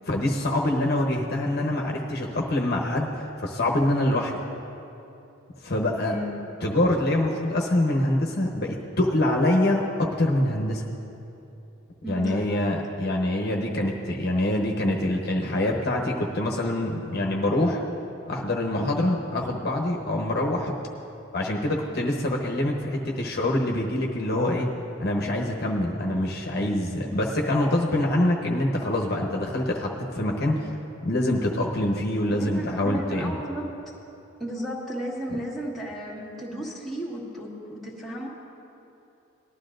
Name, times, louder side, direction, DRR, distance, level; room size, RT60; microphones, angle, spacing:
voice 1, 0.1-4.4 5.6-6.2 6.6-10.8 12.1-17.8 18.3-20.7 21.3-24.7 25.0-30.7 31.0-33.3, left 1 dB, 50° left, -1 dB, 1.0 m, -25 dB
voice 2, 6.0-6.4 12.0-12.7 32.3-33.8 34.4-38.3, equal, ahead, -6 dB, 1.7 m, -34 dB
18.5 x 12.0 x 2.6 m, 2.9 s
head